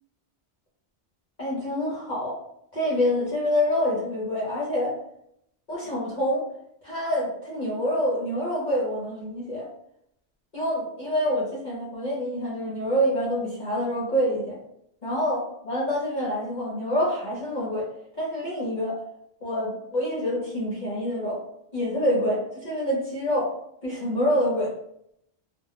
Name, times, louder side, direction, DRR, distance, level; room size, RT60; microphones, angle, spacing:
voice 1, 1.4-2.4 2.7-4.9 5.7-6.4 6.8-9.7 10.5-14.5 15.0-17.9 18.2-19.0 19.4-21.4 21.7-23.5 23.8-24.7, equal, 45° left, -6 dB, 0.9 m, -26 dB
2.3 x 2.2 x 3.6 m, 0.74 s
omnidirectional pair, 1.1 m